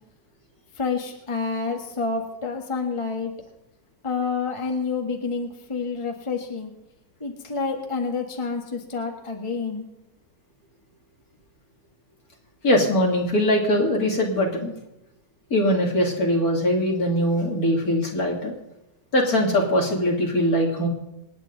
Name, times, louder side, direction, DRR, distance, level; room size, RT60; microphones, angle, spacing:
voice 1, 0.7-3.3 4.0-6.7 7.2-9.8, left 4 dB, 20° left, 2 dB, 1.6 m, -28 dB
voice 2, 12.6-14.7 15.5-18.5 19.1-20.9, equal, 60° left, 0 dB, 3.4 m, -21 dB
27.0 x 9.7 x 4.0 m, 0.90 s
omnidirectional pair, 1.8 m